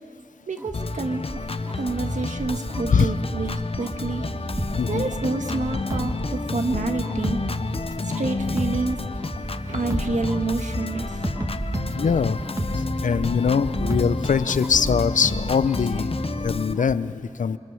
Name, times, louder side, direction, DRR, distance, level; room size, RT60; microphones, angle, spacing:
voice 1, 0.5-1.4 1.7-4.3 4.9-7.4 8.2-9.0 9.7-11.3 11.7-11.8, right 3 dB, 75° right, 6 dB, 1.5 m, -28 dB
sound 1, 0.6-17.0, right 1 dB, 10° right, 0.5 m, -34 dB
Organ, 0.7-16.7, left 4 dB, 50° left, 0.8 m, -31 dB
sound 2, 4.6-6.8 7.1-14.8 15.1-15.2, right 1 dB, 25° right, 2.1 m, -32 dB
voice 2, 4.8-5.1 11.9-12.4 13.0-16.1 16.4-17.6, left 6 dB, 85° left, 15 dB, 0.6 m, -22 dB
27.5 x 23.5 x 6.3 m, 2.7 s
wide cardioid pair, 60°, 13 cm